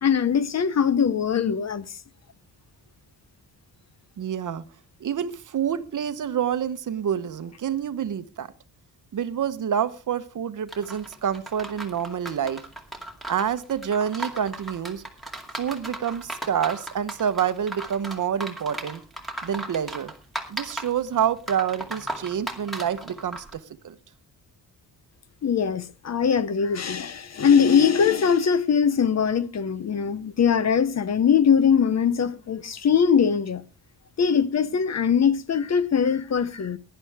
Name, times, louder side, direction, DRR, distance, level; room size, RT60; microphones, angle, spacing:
voice 1, 0.0-1.8 25.4-33.6 34.2-36.8, left 7 dB, 40° left, 0.7 m, -21 dB
voice 2, 4.2-4.6 5.0-8.5 9.1-12.6 13.3-15.0 15.6-19.0 19.4-20.1 20.5-23.9, right 8 dB, 50° right, 1.0 m, -27 dB
sound 1, 10.7-23.5, right 1 dB, ahead, 2.3 m, -36 dB
17.5 x 11.5 x 3.4 m
wide cardioid pair, 160°, 41 cm